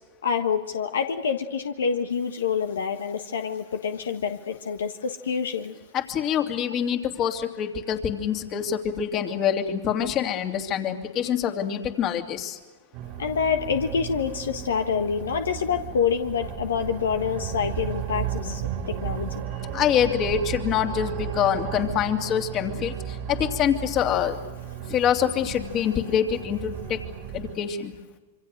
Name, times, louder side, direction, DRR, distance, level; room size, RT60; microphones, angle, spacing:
voice 1, 0.2-5.7 13.2-18.6 18.9-19.4, left 6 dB, 80° left, 7 dB, 1.4 m, -27 dB
voice 2, 5.9-12.6 19.7-24.4 24.9-27.0 27.3-27.9, left 9 dB, 35° left, 5 dB, 2.7 m, -25 dB
sound 1, 12.9-27.6, right 9 dB, 50° right, 2.3 m, -34 dB
26.5 x 25.0 x 6.6 m, 1.3 s
hypercardioid pair, 110°, 0 cm